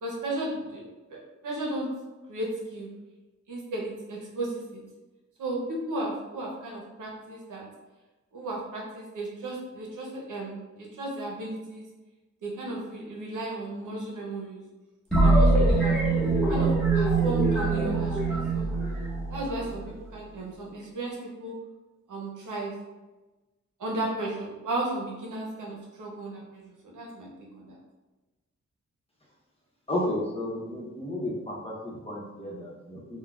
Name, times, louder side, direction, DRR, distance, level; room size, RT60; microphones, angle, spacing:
voice 1, 0.0-0.8 1.1-1.9 2.3-2.9 3.5-4.8 5.4-7.6 8.3-11.9 12.4-14.6 15.2-16.0 16.5-18.7 19.3-21.5 22.1-22.8 23.8-27.3 27.5-27.8, right 2 dB, 85° right, -2 dB, 0.8 m, -34 dB
sound 1, 15.1-19.8, right 3 dB, ahead, 1.3 m, -23 dB
voice 2, 29.9-31.7 32.0-33.0, left 1 dB, 20° left, -5 dB, 0.9 m, -32 dB
3.8 x 2.3 x 2.3 m, 1.1 s
cardioid pair, 70°, 30 cm